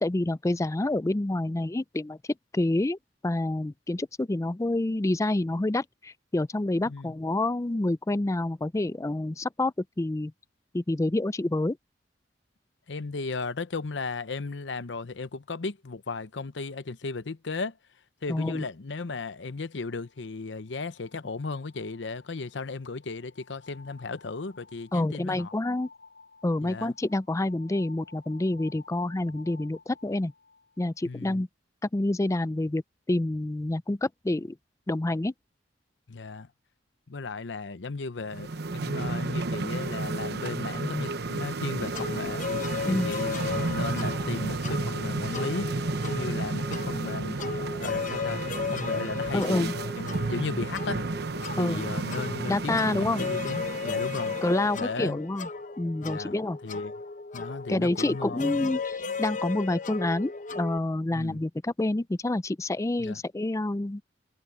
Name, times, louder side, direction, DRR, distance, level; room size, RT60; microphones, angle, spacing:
voice 1, 0.0-2.2 2.5-3.0 3.2-10.3 10.7-11.8 18.3-18.6 24.9-25.9 26.4-30.3 30.8-31.5 31.9-32.8 33.1-34.6 34.9-35.3 42.9-43.1 49.3-49.7 51.6-51.9 52.5-53.3 54.4-55.5 55.8-56.6 57.7-64.0, left 2 dB, 15° left, 0.4 m, -28 dB
voice 2, 12.9-17.8 18.2-25.5 26.6-26.9 31.1-31.4 36.1-36.5 37.1-42.4 42.9-45.7 46.0-47.4 47.8-48.4 48.7-51.0 51.5-54.4 54.7-55.2 56.0-56.3 56.6-56.9 57.3-58.7 61.1-61.4 63.0-63.2, left 3 dB, 80° left, 0.8 m, -35 dB
sound 1, 19.4-31.1, left 4 dB, 60° left, 7.7 m, -54 dB
sound 2, 38.3-54.9, right 3 dB, 60° right, 0.9 m, -32 dB
sound 3, 41.9-60.8, left 5 dB, 45° left, 1.0 m, -35 dB
head